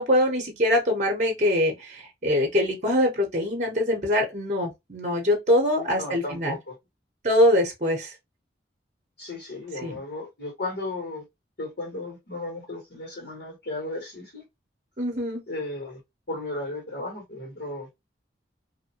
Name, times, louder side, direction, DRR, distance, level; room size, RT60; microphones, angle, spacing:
voice 1, 0.0-6.6 7.2-8.1 9.8-10.0 15.0-15.4, left 1 dB, 40° right, 0.8 m, -23 dB
voice 2, 5.7-6.7 9.2-11.2 11.6-14.4 15.5-16.0 16.3-17.9, left 2 dB, 75° left, 1.5 m, -35 dB
2.7 x 2.1 x 2.8 m
head